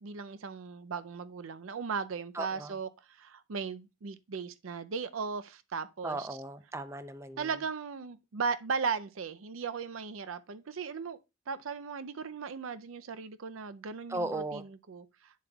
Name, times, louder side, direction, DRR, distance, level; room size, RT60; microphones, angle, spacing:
voice 1, 0.0-2.9 3.2-6.3 7.4-11.2 11.5-15.0, right 5 dB, 85° right, 0.5 m, -37 dB
voice 2, 2.3-2.7 6.0-7.5 14.1-14.6, right 2 dB, 15° right, 0.5 m, -36 dB
9.4 x 7.3 x 2.3 m
head